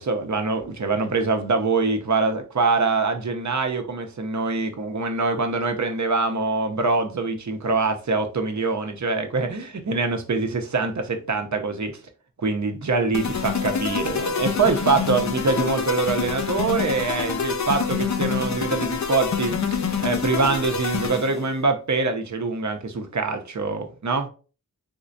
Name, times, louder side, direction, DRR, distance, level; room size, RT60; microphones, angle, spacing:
voice 1, 0.0-11.9 12.4-24.3, right 3 dB, 50° right, 0.8 m, -24 dB
sound 1, 13.1-21.5, left 6 dB, 50° left, 0.6 m, -26 dB
3.6 x 3.1 x 2.6 m
cardioid pair, 40°, 36 cm